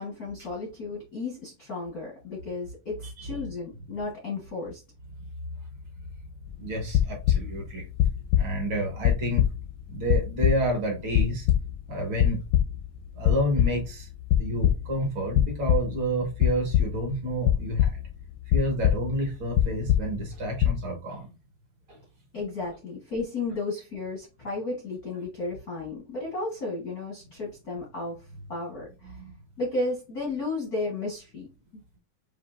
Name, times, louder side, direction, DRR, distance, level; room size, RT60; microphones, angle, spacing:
voice 1, 0.0-4.8 22.3-29.2 29.6-31.8, left 3 dB, 60° left, 0.9 m, -33 dB
sound 1, 6.5-7.6 8.0-8.7 9.0-10.7 11.1-11.9 12.2-13.0 13.2-13.9 14.3-14.9 15.3-16.1 16.4-17.0 17.5-18.2 18.5-19.3 19.5-20.3 20.6-20.8, left 12 dB, 80° left, 1.8 m, -23 dB
voice 2, 6.6-7.9 8.4-9.5 9.9-11.5 11.9-12.4 13.1-14.1 14.4-18.0 18.5-21.3 21.9-22.0 29.1-29.4, right 1 dB, 60° right, 1.4 m, -29 dB
7.3 x 2.7 x 2.6 m
omnidirectional pair, 4.1 m